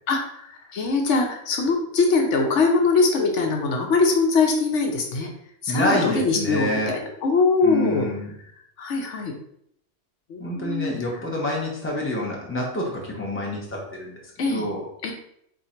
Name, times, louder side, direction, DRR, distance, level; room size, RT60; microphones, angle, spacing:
voice 1, 0.1-5.3 5.6-8.1 8.8-9.3 10.3-10.9 14.4-14.7 15.0-15.1, left 4 dB, 75° left, 2 dB, 1.0 m, -22 dB
voice 2, 5.7-6.9 7.6-8.3 10.4-14.9, left 1 dB, 10° left, -2 dB, 0.8 m, -27 dB
3.7 x 2.5 x 4.3 m, 0.72 s
omnidirectional pair, 1.3 m